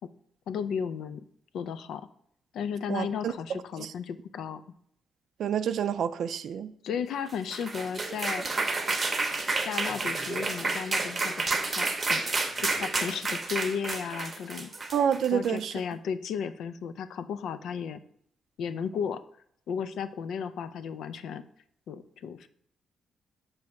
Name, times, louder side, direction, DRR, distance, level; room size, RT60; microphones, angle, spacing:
voice 1, 0.5-1.2 1.5-2.1 2.5-4.6 6.8-8.5 9.6-12.2 12.6-14.7 15.3-18.0 18.6-19.2 19.7-21.4 21.9-22.5, left 7 dB, 80° left, 0.4 m, -34 dB
voice 2, 2.9-3.3 3.8-3.9 5.4-6.7 14.9-15.7, right 8 dB, 70° right, 0.4 m, -28 dB
sound 1, 7.3-15.6, right 3 dB, 30° right, 0.7 m, -30 dB
6.2 x 3.2 x 5.8 m
cardioid pair, 140°, 0 cm